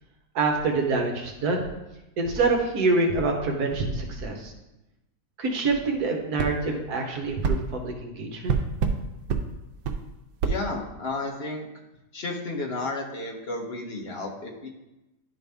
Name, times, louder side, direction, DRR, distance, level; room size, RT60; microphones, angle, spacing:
voice 1, 0.3-1.7 2.2-4.5 5.4-8.5, right 3 dB, 65° right, 2 dB, 1.4 m, -26 dB
sound 1, 6.4-6.5 7.4-7.6 8.5-9.0 9.3-9.4 9.8-10.0 10.4-10.6, right 5 dB, 85° right, 1.3 m, -25 dB
voice 2, 10.4-11.7 12.1-14.7, left 2 dB, 45° left, 1 dB, 1.0 m, -32 dB
11.0 x 4.1 x 3.4 m, 0.96 s
omnidirectional pair, 1.8 m